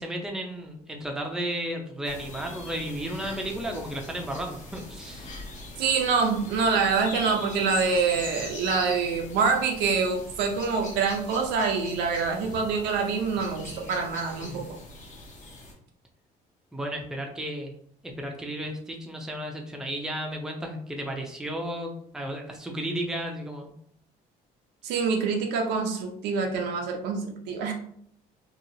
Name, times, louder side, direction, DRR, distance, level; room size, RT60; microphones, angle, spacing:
voice 1, 0.0-5.4 14.4-14.7 16.7-17.7 18.0-23.7, right 1 dB, 5° right, 1 dB, 0.5 m, -33 dB
sound 1, 2.0-15.7, left 2 dB, 45° left, 0.8 m, -41 dB
voice 2, 5.8-14.6 24.8-27.7, right 5 dB, 90° right, 2 dB, 0.6 m, -26 dB
2.8 x 2.3 x 2.6 m, 0.65 s
cardioid pair, 110°, 17 cm